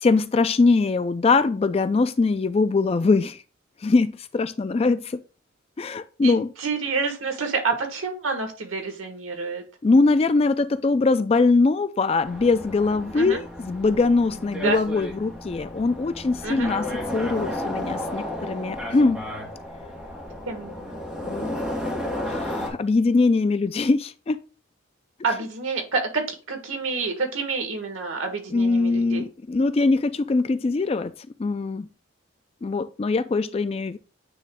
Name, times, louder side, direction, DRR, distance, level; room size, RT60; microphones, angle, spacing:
voice 1, 0.0-3.4 3.8-5.2 5.8-6.5 9.8-19.2 21.1-22.0 22.3-24.4 28.5-31.1 31.4-31.9 32.6-34.0, left 3 dB, 30° left, 0.3 m, -22 dB
voice 2, 6.2-9.6 13.1-13.4 14.6-14.8 16.4-16.7 20.5-20.9 25.2-29.2, right 4 dB, 85° right, 1.5 m, -28 dB
sound 1, 12.2-22.7, left 1 dB, 5° right, 1.7 m, -33 dB
9.1 x 3.1 x 3.6 m
head